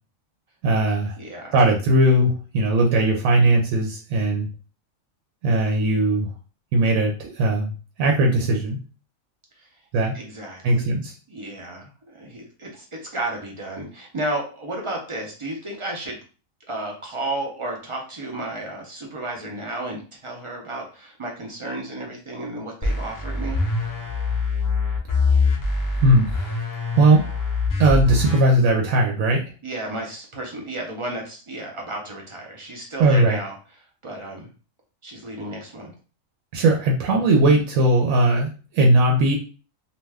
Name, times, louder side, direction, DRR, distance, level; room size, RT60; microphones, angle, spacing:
voice 1, 0.6-1.1 1.5-4.5 5.4-6.3 6.7-7.7 8.0-8.8 9.9-10.2 10.6-11.1 26.0-26.3 27.0-27.2 27.8-29.4 33.0-33.4 36.5-39.4, right 1 dB, 90° right, 0 dB, 1.0 m, -18 dB
voice 2, 1.2-1.6 9.6-9.7 10.1-10.9 11.3-16.2 16.7-23.6 29.6-33.6 34.0-34.5 35.0-35.9, right 1 dB, 45° right, 0 dB, 0.4 m, -33 dB
sound 1, 22.8-28.4, left 3 dB, 25° left, 0.4 m, -24 dB
2.5 x 2.2 x 3.3 m, 0.37 s
omnidirectional pair, 1.4 m